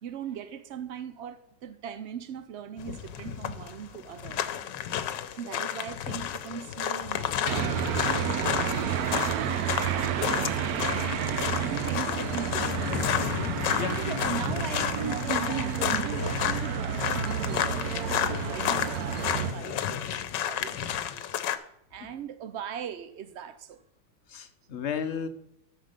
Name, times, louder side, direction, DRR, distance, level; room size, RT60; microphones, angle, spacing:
voice 1, 0.0-4.6 5.3-12.7 13.7-20.8 21.1-23.8, right 8 dB, 85° right, 0.6 m, -40 dB
sound 1, 2.8-21.6, left 10 dB, 90° left, 1.4 m, -31 dB
sound 2, 7.4-19.5, right 9 dB, 70° right, 1.1 m, -30 dB
voice 2, 13.7-14.2 15.4-15.5 24.3-25.3, left 7 dB, 50° left, 0.9 m, -34 dB
13.0 x 5.0 x 5.2 m
omnidirectional pair, 1.9 m